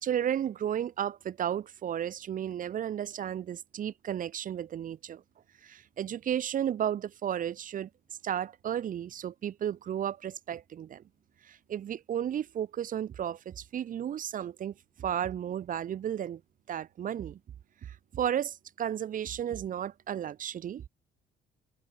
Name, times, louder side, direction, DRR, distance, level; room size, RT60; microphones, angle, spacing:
voice 1, 0.0-5.2 5.6-7.9 8.2-11.0 11.4-16.4 16.7-17.4 17.8-20.9, right 10 dB, 55° right, 3.2 m, -33 dB
cardioid pair, 110°, 17 cm